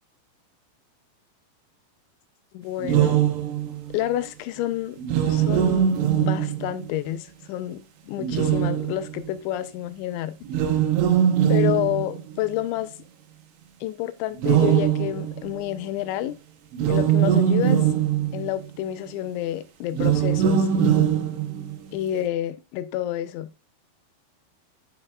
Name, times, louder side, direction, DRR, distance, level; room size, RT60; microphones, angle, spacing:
voice 1, 2.5-3.2 3.9-5.0 5.3-10.4 11.5-12.9 13.8-16.4 16.9-17.9 18.3-21.1 21.9-23.5, left 13 dB, 85° left, 2.9 m, -29 dB
sound 1, 2.8-3.9 5.0-7.0 8.2-9.3 10.5-12.5 14.4-15.8 16.7-18.7 19.9-21.9, right 9 dB, 85° right, 3.3 m, -22 dB
7.4 x 6.9 x 2.3 m
omnidirectional pair, 5.1 m